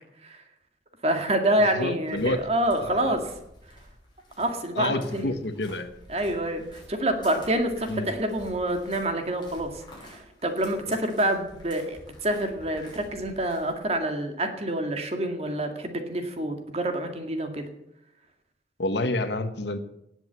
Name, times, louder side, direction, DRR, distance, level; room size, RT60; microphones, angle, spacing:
voice 1, 1.0-3.2 4.4-5.3 6.1-9.7 10.0-17.7, right 1 dB, 35° right, 5 dB, 2.0 m, -27 dB
voice 2, 1.6-2.4 2.8-3.0 4.8-5.9 7.9-8.1 18.8-19.8, left 2 dB, 70° left, 9 dB, 1.3 m, -28 dB
sound 1, 2.0-13.9, left 1 dB, 25° left, 6.2 m, -50 dB
18.5 x 8.0 x 8.1 m, 0.80 s
head